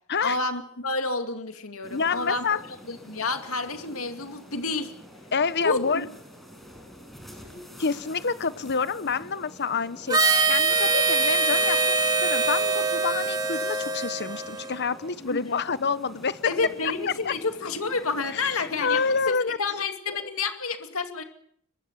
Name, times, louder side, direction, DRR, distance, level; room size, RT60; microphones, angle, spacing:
voice 1, 0.2-2.6 2.9-4.9 5.6-6.1 15.3-15.6 16.4-19.0 19.3-21.2, left 3 dB, 70° left, 7 dB, 2.5 m, -29 dB
sound 1, 1.8-19.3, equal, ahead, 5.9 m, -48 dB
voice 2, 1.9-2.6 5.3-6.1 7.8-10.2 10.5-16.4 17.1-17.3 18.3-19.6 20.1-20.3, left 5 dB, 50° left, 15 dB, 1.0 m, -28 dB
Harmonica, 10.1-14.8, right 3 dB, 20° right, 1.9 m, -23 dB
23.0 x 22.0 x 7.3 m, 0.64 s
head